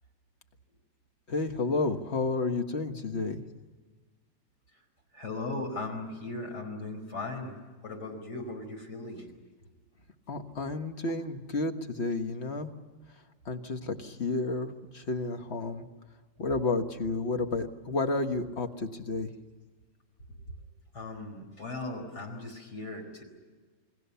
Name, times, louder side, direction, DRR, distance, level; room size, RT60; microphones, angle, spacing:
voice 1, 1.3-3.4 10.3-12.7 13.4-15.9 16.4-19.3, left 3 dB, 40° left, 6 dB, 1.7 m, -31 dB
voice 2, 5.1-7.5 7.8-9.3 20.9-23.2, left 2 dB, 60° left, 3 dB, 5.3 m, -38 dB
29.0 x 21.5 x 7.0 m, 1.4 s
omnidirectional pair, 2.0 m